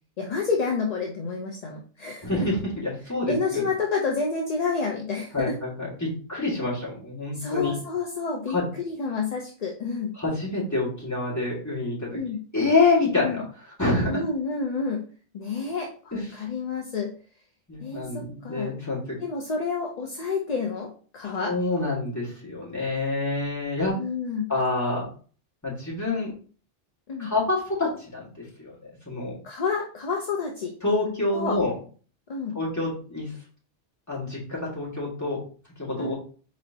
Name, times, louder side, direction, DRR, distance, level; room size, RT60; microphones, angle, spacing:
voice 1, 0.2-2.5 3.3-5.6 7.3-10.1 12.1-12.4 13.2-13.4 14.1-15.0 15.3-17.1 17.8-18.8 19.2-21.5 23.9-24.5 27.1-27.3 29.4-30.7 31.3-31.6 32.3-32.6 36.0-36.1, left 4 dB, 45° left, 0 dB, 0.6 m, -29 dB
voice 2, 2.2-3.6 5.3-7.7 8.5-8.6 10.2-12.2 12.5-13.4 13.8-14.2 16.1-16.4 17.7-19.2 21.5-23.9 24.5-25.1 25.6-26.3 27.2-28.3 28.6-29.4 30.8-31.8 32.5-33.3 34.1-35.4 35.8-36.1, left 3 dB, 15° left, -6 dB, 1.8 m, -27 dB
4.2 x 4.1 x 2.7 m, 0.41 s
omnidirectional pair, 1.2 m